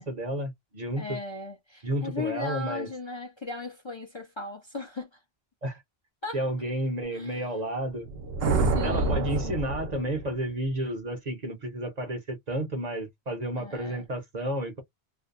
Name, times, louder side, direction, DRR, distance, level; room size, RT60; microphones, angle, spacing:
voice 1, 0.0-1.2 1.8-2.9 5.6-5.8 6.3-8.1 8.8-14.8, right 1 dB, 45° right, 0.8 m, -31 dB
voice 2, 0.9-5.2 6.2-6.5 7.1-7.5 8.3-9.6 13.6-14.1, left 4 dB, 35° left, 0.6 m, -37 dB
sound 1, 8.0-10.5, right 3 dB, 75° right, 0.9 m, -27 dB
2.5 x 2.1 x 2.4 m
omnidirectional pair, 1.0 m